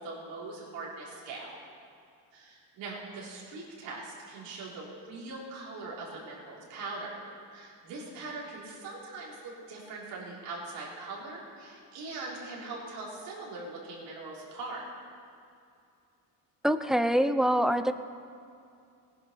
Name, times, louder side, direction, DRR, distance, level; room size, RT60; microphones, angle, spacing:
voice 1, 0.0-1.5 2.3-7.1 7.5-14.8, right 3 dB, 90° right, -4 dB, 3.8 m, -41 dB
voice 2, 16.6-17.9, equal, ahead, 10 dB, 0.6 m, -25 dB
18.0 x 10.5 x 5.7 m, 2.5 s
supercardioid pair, 80°, 42 cm